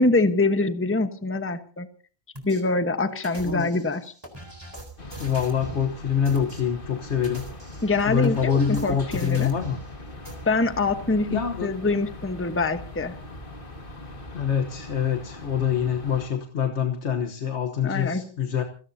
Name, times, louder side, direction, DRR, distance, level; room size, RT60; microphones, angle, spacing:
voice 1, 0.0-1.9 2.4-4.1 7.8-9.5 10.5-13.1 17.8-18.3, left 3 dB, 10° left, 8 dB, 1.0 m, -24 dB
sound 1, 2.3-2.6 3.2-5.8 6.2-6.6 7.1-9.8 10.2-10.3, right 2 dB, 15° right, 4.1 m, -41 dB
sound 2, 5.0-16.3, left 2 dB, 40° left, 2.1 m, -41 dB
voice 2, 5.2-7.5 8.1-9.8 11.3-11.7 14.3-18.6, left 8 dB, 55° left, 6 dB, 1.5 m, -25 dB
29.5 x 17.5 x 2.8 m, 0.41 s
omnidirectional pair, 1.4 m